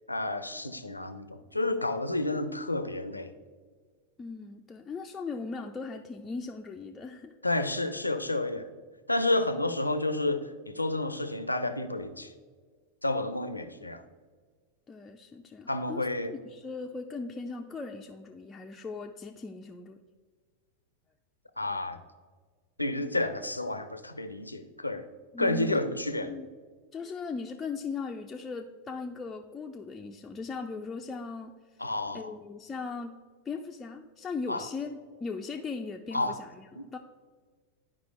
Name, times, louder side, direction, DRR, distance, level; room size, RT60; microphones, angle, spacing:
voice 1, 0.1-3.3 7.4-8.7 9.1-12.3 13.0-14.0 15.7-16.3 21.6-22.0 22.8-25.1 25.4-26.3 31.8-32.3 34.5-34.7 36.1-36.4 36.8-36.9, left 2 dB, 85° left, 9 dB, 0.5 m, -30 dB
voice 2, 4.2-7.3 14.9-20.0 25.3-25.8 26.2-26.5 26.9-31.6 32.1-33.2 33.5-37.0, left 4 dB, 15° left, 2 dB, 0.4 m, -38 dB
11.5 x 4.7 x 2.4 m, 1.5 s
figure-of-eight pair, 90°, 0 cm